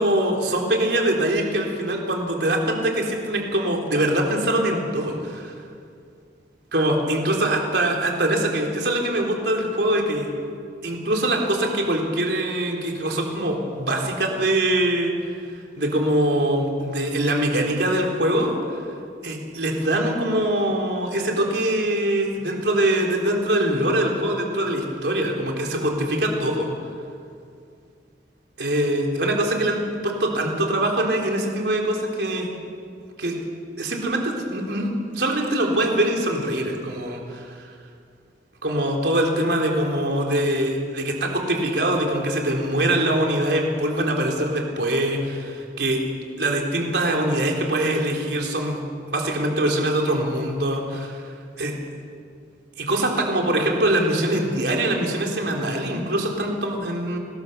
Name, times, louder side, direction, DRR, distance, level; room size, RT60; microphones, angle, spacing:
voice 1, 0.0-5.5 6.7-10.3 10.8-15.1 15.5-18.5 19.2-26.7 28.6-32.5 33.2-33.3 33.8-37.7 38.6-46.0 46.4-48.8 49.1-51.2 51.6-51.7 52.8-57.2, right 1 dB, 70° right, 0 dB, 3.8 m, -23 dB
26.0 x 19.5 x 6.9 m, 2.4 s
head